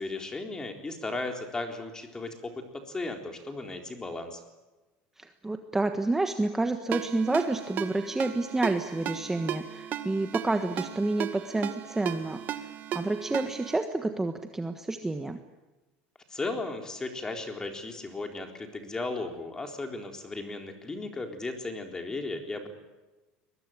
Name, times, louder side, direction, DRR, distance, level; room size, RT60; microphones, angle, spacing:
voice 1, 0.0-4.4 16.3-22.7, left 2 dB, 15° left, 4 dB, 4.0 m, -36 dB
voice 2, 5.2-15.4, right 2 dB, 10° right, 6 dB, 1.4 m, -29 dB
Ringtone, 6.9-13.8, right 10 dB, 45° right, 1.9 m, -36 dB
23.0 x 22.0 x 9.1 m, 1.2 s
supercardioid pair, 130°, 4 cm